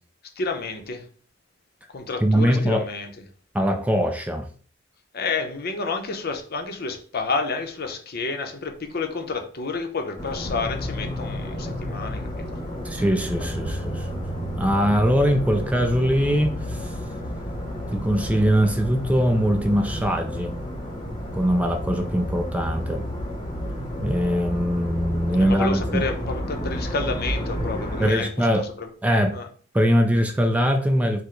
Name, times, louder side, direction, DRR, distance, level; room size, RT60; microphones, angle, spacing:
voice 1, 0.4-1.0 1.9-3.1 5.1-12.5 25.4-28.9 29.3-29.5, left 4 dB, 50° left, 0.7 m, -30 dB
voice 2, 2.2-2.9 3.5-4.5 12.8-14.2 14.6-16.9 17.9-20.5 21.3-23.0 24.0-26.1 28.0-28.7 29.0-29.4 29.7-31.2, equal, 5° right, 0.4 m, -22 dB
sound 1, 10.2-28.1, equal, 25° left, 1.0 m, -31 dB
sound 2, 10.5-16.1, equal, 90° left, 0.8 m, -37 dB
4.8 x 2.2 x 4.5 m
head